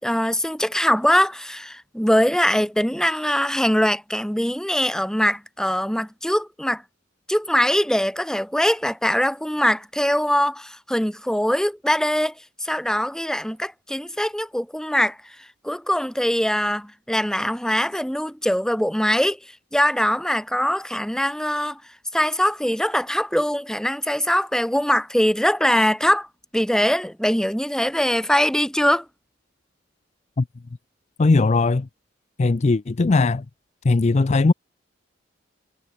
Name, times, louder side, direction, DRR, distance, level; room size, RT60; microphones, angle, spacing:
voice 1, 0.0-6.8 7.3-12.3 12.6-15.2 15.6-19.4 19.7-21.8 22.1-26.3 26.5-29.1, equal, 5° left, 2.5 m, -22 dB
voice 2, 31.2-31.9 32.4-33.4 33.8-34.5, left 3 dB, 35° left, 0.5 m, -18 dB
head